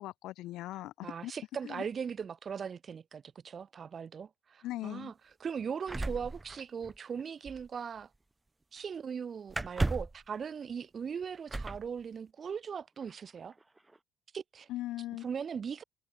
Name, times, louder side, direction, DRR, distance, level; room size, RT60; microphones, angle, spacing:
voice 1, 0.0-1.3 1.6-1.8 4.6-5.1 14.7-15.2, left 16 dB, 75° left, 1.0 m, -39 dB
voice 2, 1.0-5.1 5.4-8.1 8.7-13.5 14.3-14.7 15.2-15.8, right 6 dB, 35° right, 1.2 m, -39 dB
sound 1, 5.9-7.2 7.5-7.7 9.5-10.2 11.5-11.9 13.0-13.1 13.5-14.0, right 2 dB, 10° right, 0.4 m, -35 dB
cardioid pair, 120°, 0 cm